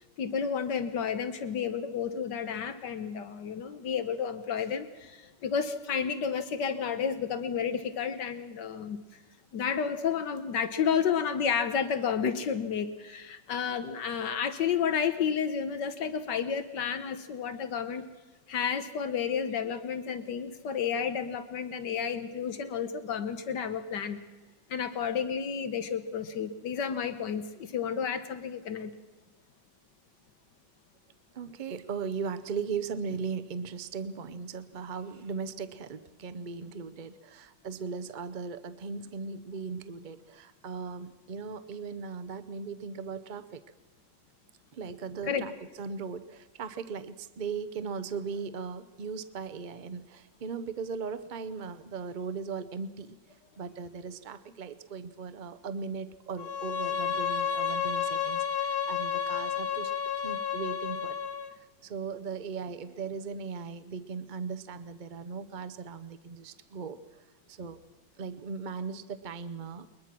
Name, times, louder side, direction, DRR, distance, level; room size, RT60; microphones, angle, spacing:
voice 1, 0.2-9.0 9.5-18.0 18.5-24.2 24.7-28.9 45.2-45.5, left 7 dB, 75° left, 10 dB, 1.6 m, -31 dB
voice 2, 31.3-43.6 44.7-45.5 45.8-53.2 53.6-59.9 60.2-61.2 61.5-67.0 67.5-67.8 68.2-70.0, right 5 dB, 60° right, 12 dB, 0.4 m, -38 dB
Bowed string instrument, 56.4-61.5, left 7 dB, 45° left, 0.9 m, -31 dB
21.5 x 21.0 x 6.0 m, 1.2 s
omnidirectional pair, 1.9 m